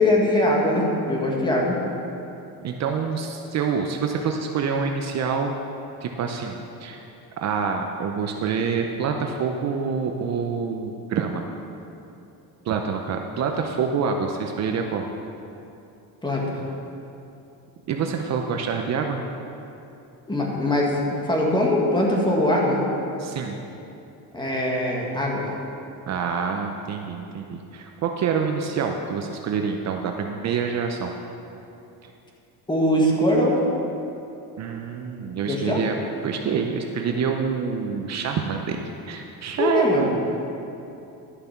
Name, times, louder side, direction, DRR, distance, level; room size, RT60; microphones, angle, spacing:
voice 1, 0.0-1.8 16.2-16.6 20.3-21.0 21.2-22.8 24.3-25.5 32.7-33.6 35.5-35.8 39.6-40.1, left 1 dB, 10° left, -2 dB, 1.7 m, -21 dB
voice 2, 2.6-5.5 6.0-7.1 7.4-11.5 12.6-15.0 17.9-19.2 23.2-23.6 26.1-31.1 34.6-36.0 36.2-38.8 39.1-40.1, right 6 dB, 45° right, 3 dB, 0.7 m, -26 dB
11.5 x 6.8 x 5.8 m, 2.8 s
cardioid pair, 140°, 37 cm